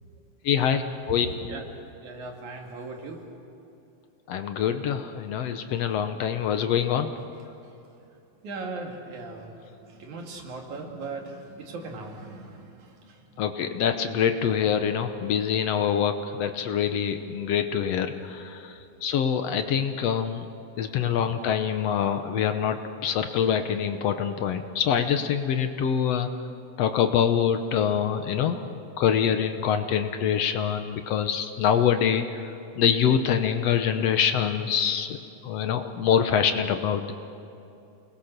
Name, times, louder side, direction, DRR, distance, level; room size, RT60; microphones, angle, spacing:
voice 1, 0.4-1.3 4.3-7.1 13.4-20.5 20.8-26.3 26.8-32.5 32.8-35.2 35.4-37.1, left 8 dB, 70° left, 8 dB, 1.8 m, -25 dB
voice 2, 1.1-1.7 2.0-3.2 8.4-13.4 21.1-21.2, right 3 dB, 80° right, 1 dB, 3.7 m, -39 dB
29.0 x 20.0 x 6.7 m, 2.7 s
omnidirectional pair, 3.3 m